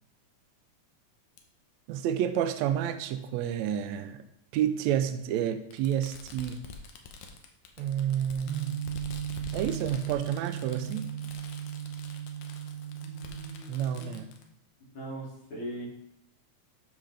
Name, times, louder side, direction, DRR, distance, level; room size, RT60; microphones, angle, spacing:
Fireworks, 1.4-1.5 2.6-2.7 4.0-4.1 5.7-14.4, left 4 dB, 80° left, 2.3 m, -47 dB
voice 1, 1.9-4.2 4.5-6.6 7.8-8.8 9.5-11.1 13.7-14.3, right 10 dB, 80° right, 9 dB, 1.7 m, -30 dB
sound 1, 8.5-13.6, right 10 dB, 65° right, 1.6 m, -36 dB
voice 2, 12.9-14.2 14.9-15.9, right 1 dB, 60° left, -9 dB, 3.7 m, -41 dB
12.0 x 5.7 x 3.3 m, 0.77 s
omnidirectional pair, 3.4 m